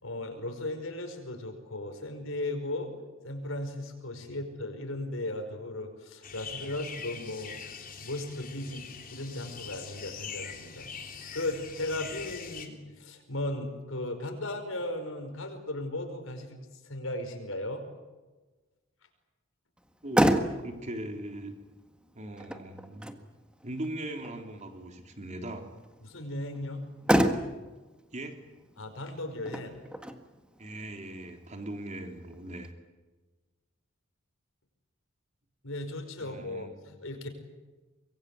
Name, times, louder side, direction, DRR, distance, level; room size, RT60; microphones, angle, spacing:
voice 1, 0.0-2.9 3.2-7.6 8.0-8.8 9.1-16.6 16.8-17.8 26.0-26.8 28.8-29.8 35.6-37.3, left 1 dB, 75° left, 5 dB, 5.1 m, -36 dB
sound 1, 6.2-12.7, left 6 dB, 45° left, 3.4 m, -43 dB
Motor vehicle (road), 19.8-32.7, equal, 5° right, 1.6 m, -33 dB
voice 2, 20.0-21.5 22.2-23.1 23.6-25.7 27.2-27.4 28.1-28.4 30.6-32.7 36.2-36.7, right 1 dB, 35° right, 4 dB, 3.6 m, -40 dB
24.5 x 22.5 x 8.6 m, 1.2 s
head